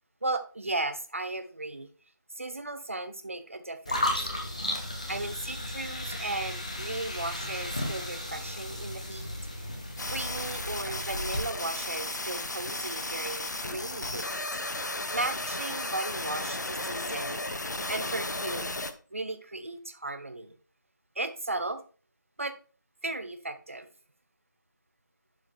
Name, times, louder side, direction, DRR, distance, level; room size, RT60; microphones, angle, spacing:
voice 1, 0.2-1.9 2.4-4.3 5.1-9.3 10.0-14.3 14.8-17.4 17.9-18.7 19.1-20.6 21.1-21.8 22.4-22.6 23.0-23.9, right 2 dB, 40° right, 10 dB, 0.9 m, -36 dB
sound 1, 3.9-11.4, left 1 dB, 20° left, 1.0 m, -34 dB
sound 2, 10.0-18.9, left 2 dB, 60° left, 0.9 m, -34 dB
11.5 x 4.7 x 3.0 m, 0.37 s
figure-of-eight pair, 175°, 10 cm